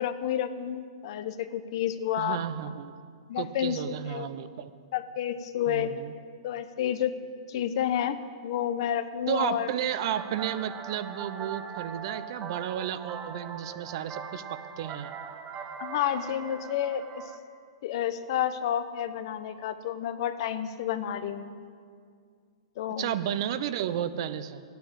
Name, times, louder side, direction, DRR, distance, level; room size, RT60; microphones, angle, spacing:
voice 1, 0.0-2.4 3.3-4.3 4.9-5.9 6.4-7.1 7.5-9.7 15.8-17.2 17.8-21.5 22.8-23.2, left 10 dB, 50° left, 11 dB, 0.8 m, -30 dB
voice 2, 2.2-2.9 3.4-4.7 5.7-6.1 9.3-15.1 23.0-24.6, right 10 dB, 50° right, 13 dB, 0.6 m, -32 dB
sound 1, 9.9-17.4, right 6 dB, 25° right, 1.0 m, -41 dB
12.0 x 9.2 x 8.8 m, 2.2 s
hypercardioid pair, 145°, 3 cm